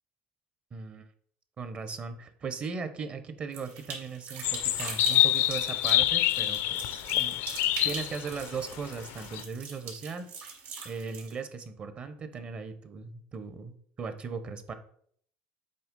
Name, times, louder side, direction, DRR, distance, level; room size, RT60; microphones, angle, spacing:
voice 1, 0.7-1.0 1.6-7.4 7.8-10.3 10.8-14.7, right 5 dB, 30° right, 9 dB, 0.8 m, -38 dB
sound 1, 3.5-11.3, right 5 dB, 65° right, 2.7 m, -42 dB
sound 2, 4.4-9.4, left 14 dB, 65° left, 0.4 m, -27 dB
7.7 x 3.2 x 5.3 m, 0.62 s
cardioid pair, 135°, 4 cm